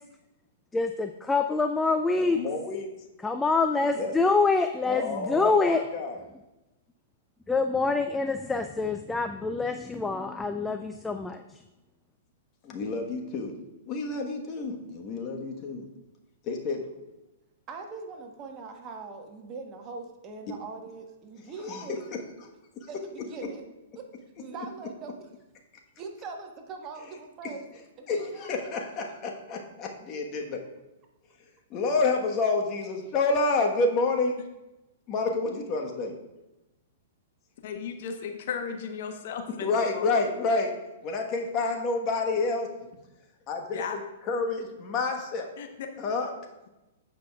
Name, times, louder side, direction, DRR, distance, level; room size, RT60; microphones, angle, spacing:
voice 1, 0.7-2.4 3.2-5.8 7.5-11.4, left 3 dB, 10° left, 6 dB, 0.4 m, -26 dB
voice 2, 2.2-2.8 4.0-4.1 4.9-6.2 12.6-13.5 13.9-15.8 16.4-16.8 21.7-21.9 28.1-30.6 31.7-34.3 35.1-36.1 39.6-40.7 41.0-42.7 43.5-43.8 44.3-45.4 46.0-46.3, left 3 dB, 35° left, 1 dB, 1.3 m, -28 dB
voice 3, 17.7-22.0 22.9-23.6 23.9-24.1 24.4-25.3 26.0-27.7 28.0-28.3, right 4 dB, 30° right, 3 dB, 1.2 m, -41 dB
voice 4, 37.6-40.2 43.7-44.0 45.6-45.9, left 7 dB, 60° left, 5 dB, 0.9 m, -35 dB
15.0 x 5.3 x 2.4 m, 1.0 s
hypercardioid pair, 115°, 0 cm